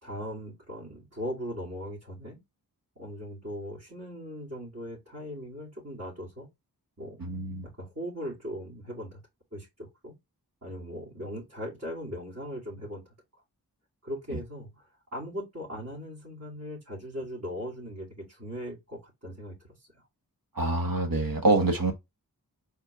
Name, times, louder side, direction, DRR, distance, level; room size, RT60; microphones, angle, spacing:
voice 1, 0.0-2.4 3.0-6.5 7.0-7.2 7.6-9.2 9.5-10.2 10.6-13.1 14.0-20.0, equal, 45° right, 2.9 m, -39 dB
voice 2, 7.2-7.7 20.5-21.9, right 2 dB, 65° right, 1.5 m, -25 dB
4.3 x 3.6 x 3.5 m
cardioid pair, 45°, 38 cm